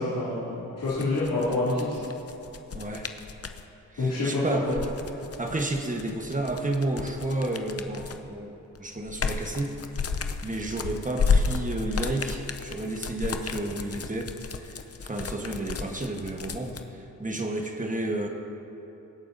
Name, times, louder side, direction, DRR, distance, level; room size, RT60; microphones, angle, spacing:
voice 1, 0.0-2.0 4.0-4.7, left 2 dB, 80° left, -11 dB, 2.9 m, -27 dB
sound 1, 0.8-3.6 4.6-8.3 8.8-16.8, left 5 dB, 45° left, 0.7 m, -31 dB
voice 2, 2.7-3.1 3.9-5.0 5.4-10.1 10.4-18.3, right 2 dB, 25° right, 2 dB, 1.2 m, -31 dB
24.0 x 9.3 x 2.7 m, 3.0 s
wide cardioid pair, 85°, 34 cm